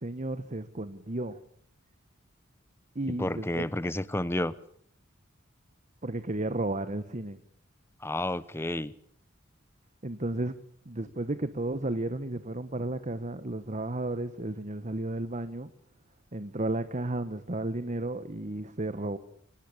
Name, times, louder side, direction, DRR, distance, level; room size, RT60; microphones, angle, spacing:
voice 1, 0.0-1.4 2.9-3.7 6.0-7.4 10.0-10.5 10.8-15.7 16.3-19.2, right 2 dB, 35° right, 11 dB, 1.2 m, -33 dB
voice 2, 3.2-4.5 8.0-8.9, left 1 dB, 10° left, 17 dB, 0.9 m, -30 dB
24.5 x 19.0 x 8.7 m, 0.63 s
head